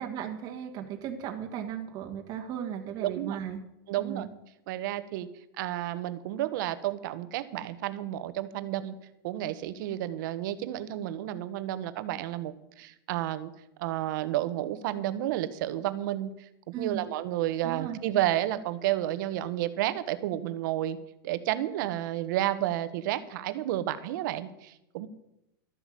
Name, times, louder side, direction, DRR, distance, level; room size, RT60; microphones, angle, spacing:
voice 1, 0.0-3.6 4.0-4.3 16.7-17.1 17.6-18.0, right 9 dB, 35° right, 3 dB, 1.5 m, -36 dB
voice 2, 3.0-3.4 3.9-4.3 4.7-5.3 5.6-8.9 9.2-13.5 13.8-16.3 16.8-21.0 21.2-25.1, right 13 dB, 60° right, 13 dB, 1.1 m, -31 dB
13.0 x 8.2 x 7.6 m, 0.85 s
supercardioid pair, 150°, 12 cm